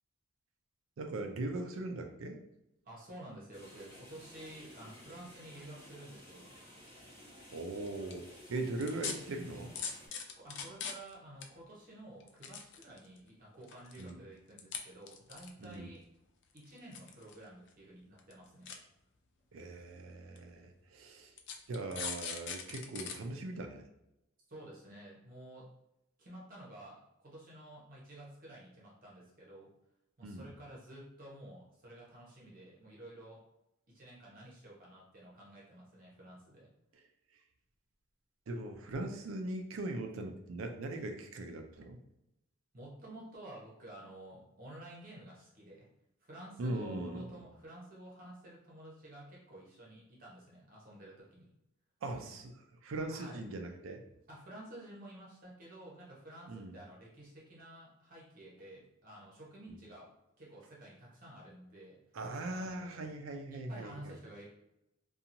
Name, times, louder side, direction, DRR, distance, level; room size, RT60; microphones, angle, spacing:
voice 1, 1.0-2.4 7.5-9.7 14.0-14.2 15.6-15.9 19.5-21.3 21.7-23.8 30.2-30.5 36.9-37.0 38.5-42.0 46.6-47.4 52.0-54.0 56.5-56.8 59.7-59.8 62.1-64.2, right 2 dB, 70° right, 5 dB, 0.4 m, -40 dB
voice 2, 2.8-6.5 10.3-16.0 16.5-18.7 24.5-25.7 26.2-29.7 30.2-33.4 33.9-36.7 42.7-45.9 46.2-51.5 53.1-53.4 54.3-60.1 60.4-62.0 62.5-63.1 63.5-64.4, right 1 dB, 40° right, -4 dB, 0.8 m, -51 dB
sound 1, 3.5-10.1, equal, 15° left, 1.2 m, -55 dB
sound 2, 7.9-8.1 8.8-9.1 9.7-11.1 11.4-11.5 12.2-13.2 13.6-14.1 14.6-14.8 15.1-15.7 16.6-17.4 17.7-17.8 18.2-18.3 18.7-18.8 19.6-19.7 20.4-20.5 21.4-23.1 23.6-23.7, left 6 dB, 55° left, 0.3 m, -40 dB
2.8 x 2.3 x 2.6 m, 0.86 s
head